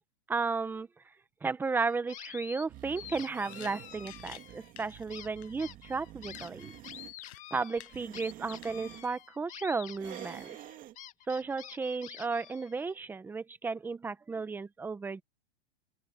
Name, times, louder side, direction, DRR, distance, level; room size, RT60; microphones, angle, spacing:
voice 1, 0.3-0.9 1.4-6.7 7.5-10.6 11.3-15.2, right 4 dB, 5° right, 0.8 m, -34 dB
sound 1, 1.8-2.7 3.0-4.7 5.1-12.9, left 12 dB, 20° left, 2.0 m, -48 dB
sound 2, 2.7-7.1 7.8-9.1 10.0-11.0, right 14 dB, 25° right, 2.0 m, -48 dB
sound 3, 3.2-3.3 3.5-4.5 4.7-5.2 5.4-5.6 5.9-6.0 6.3-7.5 7.8-8.3 8.6-9.1, left 11 dB, 75° left, 6.8 m, -52 dB
open air
supercardioid pair, 155°, 33 cm